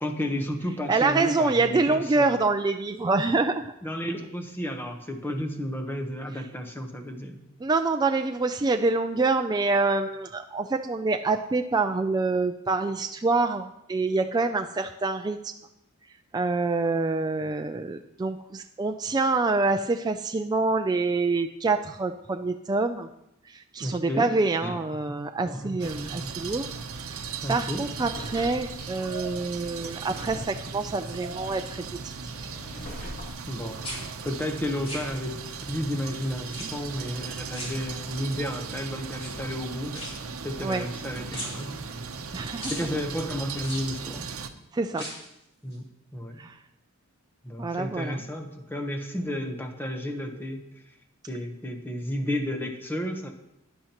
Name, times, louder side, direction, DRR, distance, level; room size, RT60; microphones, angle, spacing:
voice 1, 0.0-2.4 3.8-7.4 23.8-24.3 24.6-24.8 25.1-26.3 26.6-26.8 27.4-27.9 33.5-33.8 34.2-40.1 40.4-41.8 42.7-44.3 45.6-45.9 46.1-46.4 47.4-50.9 51.3-53.3, equal, 10° left, 3 dB, 1.0 m, -32 dB
voice 2, 0.9-3.6 7.6-15.4 16.3-23.1 23.5-27.2 27.5-32.1 32.4-32.5 40.6-40.9 42.3-42.7 44.7-45.0 46.4-46.5 47.6-48.2, right 3 dB, 20° right, 6 dB, 0.3 m, -26 dB
sound 1, 25.8-44.5, right 5 dB, 75° right, 0.8 m, -38 dB
Drawer open or close, 27.5-35.0 35.4-35.5, equal, 50° left, 3.5 m, -45 dB
sound 2, 28.7-29.6 30.0-30.4 30.7-31.8 32.0-33.6 33.8-35.6 36.5-37.1 37.5-38.4 39.1-41.0 41.3-42.3 42.6-42.9 43.6-44.4 44.9-45.4 45.7-45.8, equal, 25° left, 2.6 m, -41 dB
12.0 x 10.0 x 3.0 m, 0.84 s
head